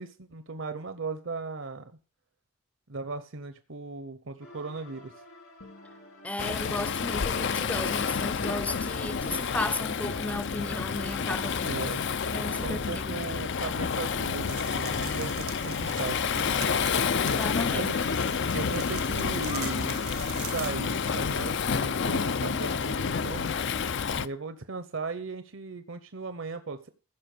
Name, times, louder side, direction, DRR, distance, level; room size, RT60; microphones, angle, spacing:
voice 1, 0.0-1.9 2.9-5.1 11.6-12.0 12.6-16.7 17.7-18.2 18.5-20.0 20.4-23.5 24.1-26.9, right 3 dB, 60° right, 0.8 m, -37 dB
sound 1, 4.4-15.8, left 2 dB, 70° left, 4.6 m, -48 dB
voice 2, 6.2-11.7 12.3-13.3 17.2-17.9, left 1 dB, 5° left, 0.5 m, -35 dB
Waves surf, 6.4-24.3, left 6 dB, 55° left, 0.5 m, -29 dB
sound 2, 14.5-20.7, right 11 dB, 80° right, 1.2 m, -44 dB
15.0 x 5.9 x 6.7 m
head